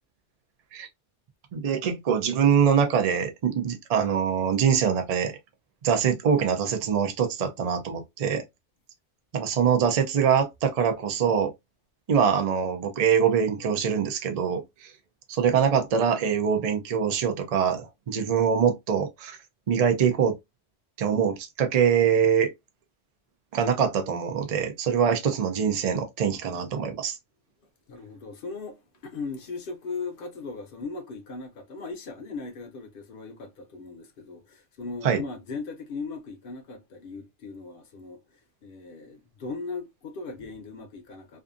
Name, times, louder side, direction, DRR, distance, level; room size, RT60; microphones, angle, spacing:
voice 1, 1.5-5.3 5.8-8.4 9.3-11.5 12.1-14.9 15.3-19.4 19.7-20.4 21.0-22.5 23.5-27.2 35.0-35.2, right 7 dB, 55° right, 0.4 m, -24 dB
voice 2, 27.9-38.2 38.6-41.4, left 4 dB, 55° left, 0.7 m, -38 dB
2.5 x 2.4 x 2.4 m
omnidirectional pair, 1.2 m